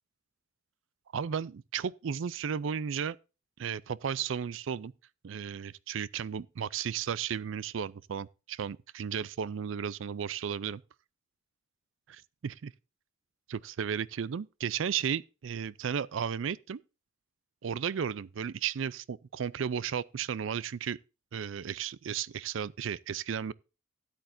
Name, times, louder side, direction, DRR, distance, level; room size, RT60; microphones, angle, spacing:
voice 1, 1.1-3.2 3.6-4.9 5.2-10.8 12.1-12.7 13.5-16.8 17.6-21.0 21.3-23.5, right 7 dB, 70° right, 0.4 m, -34 dB
13.0 x 10.5 x 2.6 m
head